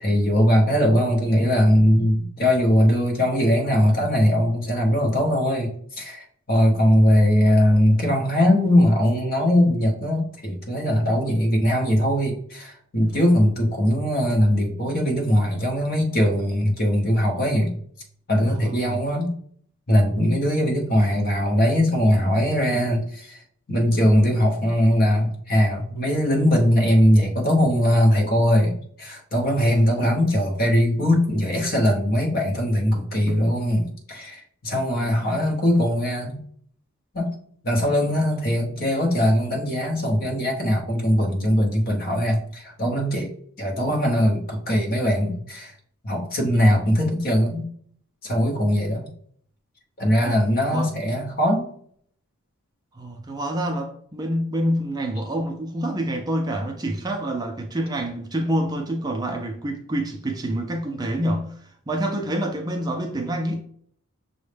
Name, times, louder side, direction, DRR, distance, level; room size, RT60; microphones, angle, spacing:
voice 1, 0.0-5.7 6.0-17.7 18.3-19.3 19.9-23.4 23.7-36.4 37.1-37.3 37.6-43.3 43.6-45.7 46.0-47.7 48.2-49.1 50.0-51.6, equal, 45° left, 0.9 m, -20 dB
voice 2, 18.4-19.0 30.0-30.1 33.3-33.6 50.2-50.4 50.7-50.9 52.9-63.6, right 1 dB, 20° right, 0.3 m, -27 dB
6.1 x 2.1 x 3.3 m
head